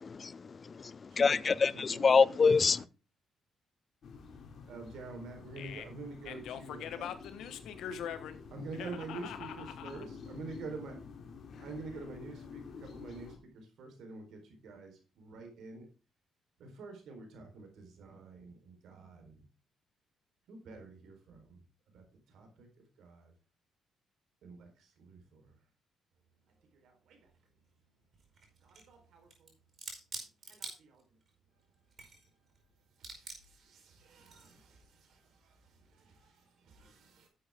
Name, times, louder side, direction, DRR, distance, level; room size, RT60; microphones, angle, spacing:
voice 1, 0.0-2.8, left 5 dB, 40° left, 0.4 m, -26 dB
voice 2, 1.1-2.7 4.7-7.1 8.5-11.0 11.6-15.9 16.6-19.4 20.5-21.6 21.9-23.3 24.4-25.5 26.7-27.3 28.6-29.5 30.4-31.0 33.0-37.3, right 3 dB, 75° right, 4.1 m, -48 dB
sound 1, 4.0-13.4, left 5 dB, 60° left, 2.7 m, -49 dB
voice 3, 5.6-5.9 6.2-8.4 8.7-10.0, left 9 dB, 80° left, 1.3 m, -43 dB
sound 2, 27.3-27.4 28.1-28.9 29.3-31.3 31.7-32.6 32.9-33.6 34.2-34.6, right 4 dB, 50° right, 5.2 m, -46 dB
11.5 x 8.0 x 3.7 m
cardioid pair, 90°, 0 cm